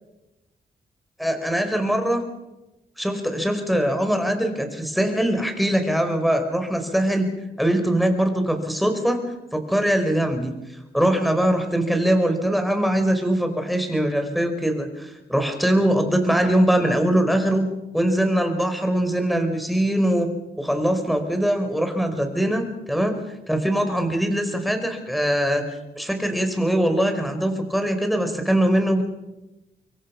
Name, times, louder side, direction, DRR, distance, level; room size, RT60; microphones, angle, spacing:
voice 1, 1.2-2.2 3.0-7.3 7.6-9.2 9.5-10.5 10.9-17.6 17.9-20.3 20.6-23.2 23.5-25.6 25.9-29.0, right 1 dB, ahead, 6 dB, 4.7 m, -22 dB
26.5 x 23.0 x 5.8 m, 0.99 s
cardioid pair, 85°, 17 cm